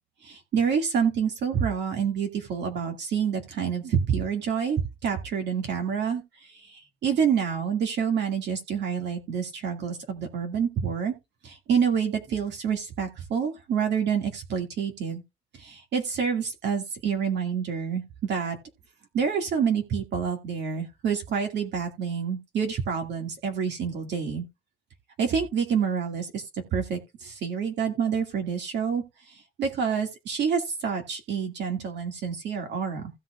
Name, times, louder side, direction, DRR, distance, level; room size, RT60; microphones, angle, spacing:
voice 1, 0.2-11.1 11.4-15.2 15.5-18.6 19.1-24.5 25.2-33.1, right 7 dB, 55° right, 2.2 m, -28 dB
16.0 x 5.7 x 2.4 m
cardioid pair, 170°, 21 cm